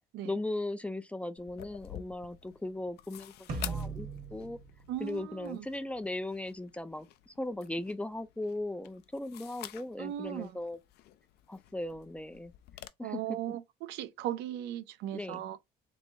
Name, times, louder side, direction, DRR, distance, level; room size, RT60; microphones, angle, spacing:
voice 1, 0.2-4.6 5.0-10.8 11.5-12.5 13.0-13.2 15.1-15.4, left 2 dB, 5° left, 0.3 m, -38 dB
sound 1, 1.4-12.9, left 13 dB, 70° left, 0.4 m, -50 dB
sound 2, 3.5-6.0, right 3 dB, 55° right, 1.1 m, -39 dB
voice 2, 4.9-5.7 10.0-10.6 13.0-15.6, right 12 dB, 85° right, 0.4 m, -37 dB
3.5 x 3.1 x 2.7 m
cardioid pair, 110°, 17 cm